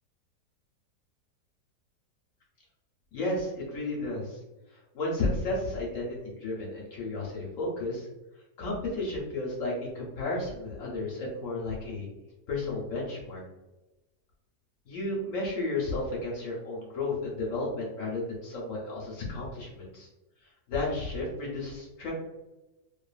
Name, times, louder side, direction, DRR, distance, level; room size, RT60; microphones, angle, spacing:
voice 1, 3.1-4.4 4.7-8.1 8.6-12.1 12.5-13.4 14.9-20.1 20.7-22.1, left 2 dB, 60° left, -3 dB, 0.9 m, -33 dB
2.7 x 2.4 x 2.3 m, 1.0 s
omnidirectional pair, 1.8 m